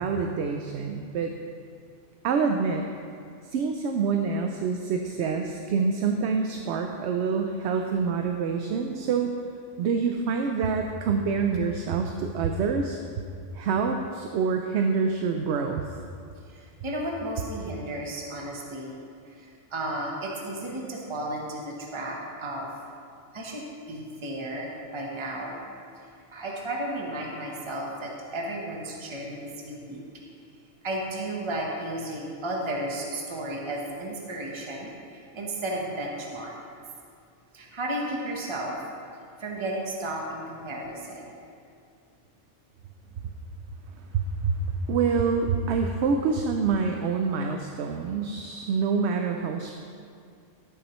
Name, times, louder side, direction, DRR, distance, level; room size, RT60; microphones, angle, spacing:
voice 1, 0.0-1.3 2.2-2.8 3.4-9.3 9.8-13.0 13.5-15.8 44.1-49.7, right 5 dB, 70° right, 4 dB, 0.8 m, -26 dB
voice 2, 16.5-18.9 19.2-22.7 23.3-25.6 26.3-30.0 30.8-36.5 37.5-38.7 39.4-41.3, right 1 dB, 25° right, -2 dB, 1.0 m, -33 dB
12.5 x 8.2 x 3.1 m, 2.3 s
omnidirectional pair, 1.3 m